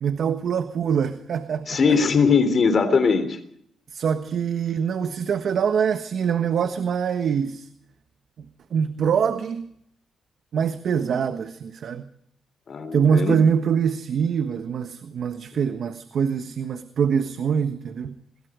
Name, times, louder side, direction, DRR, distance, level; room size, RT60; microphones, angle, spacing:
voice 1, 0.0-2.0 3.9-7.7 8.7-9.7 10.5-12.1 12.9-18.2, right 7 dB, 60° right, 1.4 m, -24 dB
voice 2, 1.7-3.4 12.7-13.4, left 5 dB, 45° left, 3.3 m, -20 dB
25.0 x 21.5 x 5.0 m
cardioid pair, 105°, 0 cm